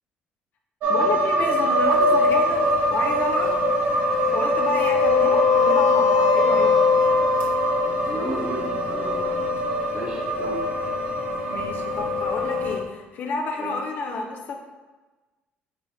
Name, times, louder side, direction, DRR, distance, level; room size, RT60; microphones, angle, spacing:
sound 1, 0.8-12.8, right 1 dB, 65° right, 0.7 m, -24 dB
voice 1, 0.9-3.5 4.3-6.7 11.5-14.6, left 3 dB, 55° left, 2 dB, 0.6 m, -30 dB
sound 2, 1.7-12.8, left 6 dB, 70° left, 1.0 m, -24 dB
voice 2, 7.8-9.5 9.9-10.6 13.6-13.7, right 2 dB, 25° right, -2 dB, 1.1 m, -33 dB
5.2 x 3.3 x 2.7 m, 1.2 s
cardioid pair, 120°, 4 cm